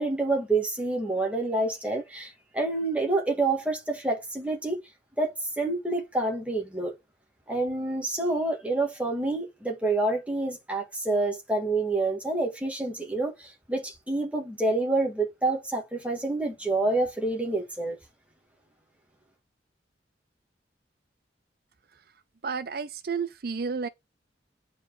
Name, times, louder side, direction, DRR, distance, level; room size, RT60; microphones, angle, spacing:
voice 1, 0.0-4.8 5.2-6.9 7.5-18.0, right 2 dB, 5° right, 2.0 m, -28 dB
voice 2, 22.4-23.9, right 5 dB, 55° right, 0.6 m, -31 dB
9.0 x 4.7 x 4.8 m
head